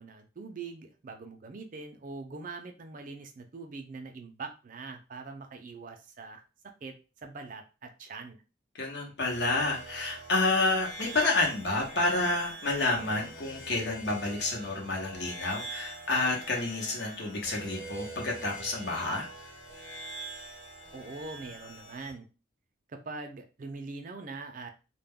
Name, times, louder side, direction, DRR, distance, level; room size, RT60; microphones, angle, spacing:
voice 1, 0.0-6.4 6.8-8.4 20.9-22.3 22.9-24.7, right 3 dB, 45° right, 5 dB, 0.4 m, -43 dB
voice 2, 8.8-19.3, left 2 dB, 60° left, 0 dB, 0.8 m, -29 dB
sound 1, 9.2-22.1, right 2 dB, 90° left, 1.2 m, -44 dB
2.2 x 2.1 x 3.4 m, 0.32 s
head